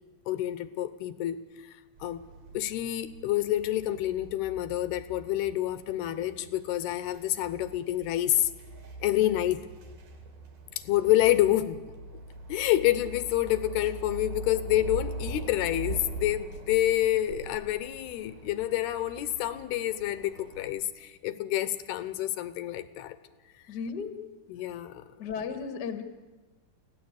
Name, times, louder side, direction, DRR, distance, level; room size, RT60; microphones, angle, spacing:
voice 1, 0.3-1.4 2.0-2.2 2.5-8.5 9.0-9.7 10.9-11.8 12.5-23.2 24.5-25.0, left 14 dB, 85° left, 13 dB, 2.9 m, -28 dB
sound 1, 2.0-20.7, right 2 dB, 70° right, 4.3 m, -43 dB
voice 2, 23.7-24.1 25.2-26.0, left 6 dB, 65° left, 7 dB, 1.0 m, -34 dB
24.0 x 16.5 x 8.1 m, 1.3 s
omnidirectional pair, 4.5 m